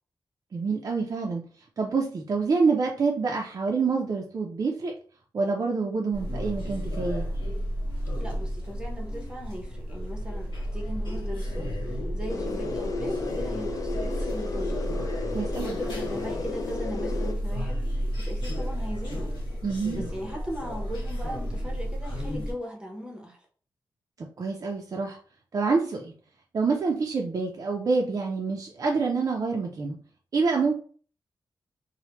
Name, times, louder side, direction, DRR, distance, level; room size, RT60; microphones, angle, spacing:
voice 1, 0.5-1.4 1.8-4.9 5.3-7.3 15.3-15.8 19.6-20.1 24.2-25.2 25.5-26.1 26.5-30.0 30.3-30.8, right 4 dB, 45° right, 0.4 m, -27 dB
sound 1, 6.1-22.5, equal, 70° left, 1.3 m, -32 dB
voice 2, 8.2-14.9 15.6-19.3 19.9-23.5, equal, 10° right, 0.7 m, -38 dB
sound 2, 12.3-17.3, left 3 dB, 45° left, 0.4 m, -33 dB
3.1 x 2.0 x 2.9 m
wide cardioid pair, 155°, 8 cm